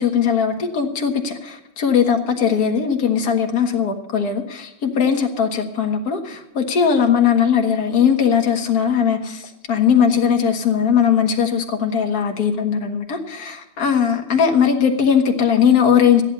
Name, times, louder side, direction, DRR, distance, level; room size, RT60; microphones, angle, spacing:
voice 1, 0.0-16.2, left 7 dB, 50° left, 2 dB, 2.0 m, -19 dB
14.0 x 10.5 x 5.4 m, 0.91 s
omnidirectional pair, 2.3 m